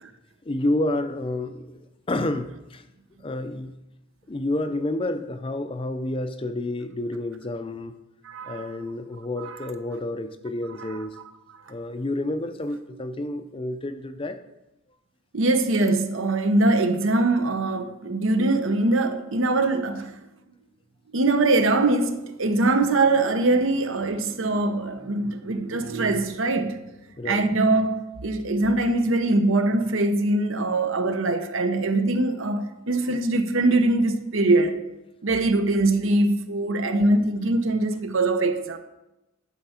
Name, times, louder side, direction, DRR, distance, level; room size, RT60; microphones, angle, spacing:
voice 1, 0.5-1.7 2.1-2.8 3.2-3.7 4.3-7.9 8.5-11.1 11.7-14.4 27.2-27.4, left 1 dB, 25° left, 0.5 m, -29 dB
voice 2, 8.2-8.7 9.4-9.6 15.3-20.1 21.1-26.7 27.3-34.8 35.2-38.8, right 2 dB, 70° right, 0.8 m, -22 dB
11.0 x 5.8 x 4.3 m
head